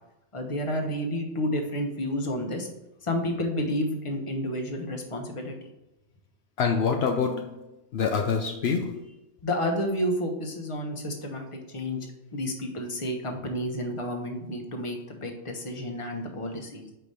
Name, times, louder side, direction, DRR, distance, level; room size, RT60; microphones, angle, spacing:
voice 1, 0.3-2.7 3.1-5.5 9.4-12.0 12.3-16.9, equal, 30° left, 2 dB, 1.0 m, -30 dB
voice 2, 6.6-7.7 7.9-9.0, left 5 dB, 70° left, 3 dB, 0.8 m, -26 dB
5.0 x 4.5 x 5.4 m, 0.95 s
omnidirectional pair, 1.2 m